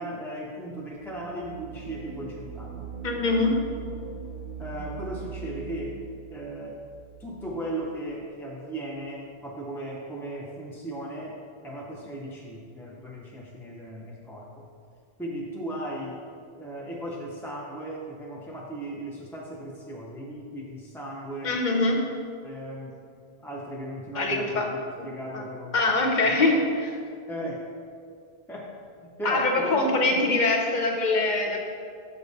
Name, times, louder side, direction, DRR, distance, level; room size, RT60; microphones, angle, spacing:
voice 1, 0.0-2.9 4.6-6.0 6.3-6.8 7.2-14.7 15.2-16.2 16.6-21.6 22.4-23.0 23.4-25.8 26.3-26.7 27.3-27.7 28.5-28.7 29.0-30.5, right 1 dB, 5° left, -4 dB, 0.4 m, -37 dB
sound 1, 0.9-8.1, right 7 dB, 90° right, 0.9 m, -41 dB
voice 2, 3.0-3.6 21.4-22.0 24.1-24.7 25.0-25.1 25.3-25.4 25.7-26.9 29.2-31.6, left 2 dB, 50° left, 2 dB, 0.9 m, -23 dB
6.9 x 5.3 x 4.0 m, 2.3 s
omnidirectional pair, 1.1 m